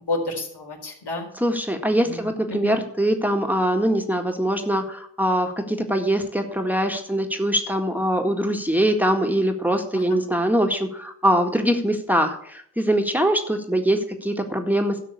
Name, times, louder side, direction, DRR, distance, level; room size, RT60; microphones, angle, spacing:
voice 1, 0.1-1.3 2.0-2.8 9.9-10.2, left 2 dB, 70° left, 1 dB, 4.3 m, -31 dB
voice 2, 1.4-15.0, equal, 5° right, 4 dB, 1.8 m, -22 dB
12.5 x 6.2 x 8.4 m, 0.66 s
cardioid pair, 55°, 42 cm